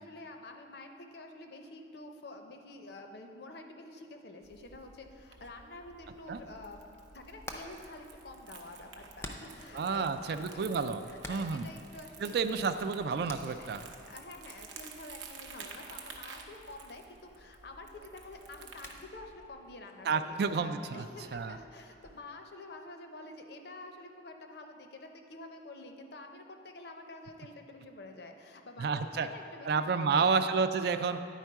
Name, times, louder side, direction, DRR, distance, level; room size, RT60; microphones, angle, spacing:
voice 1, 0.0-12.8 13.5-13.7 14.0-30.4, left 2 dB, 55° left, 5 dB, 0.6 m, -48 dB
Crumpling crinkling, 4.4-19.0, right 5 dB, 75° right, 0.7 m, -51 dB
Hammer, 6.9-22.2, left 1 dB, 15° left, 0.4 m, -52 dB
voice 2, 9.7-11.0 11.3-11.7 12.2-13.9 20.0-21.1 21.3-21.6 28.8-29.3 29.6-31.2, right 5 dB, 55° right, 10 dB, 0.3 m, -30 dB
10.0 x 4.4 x 4.6 m, 2.6 s
head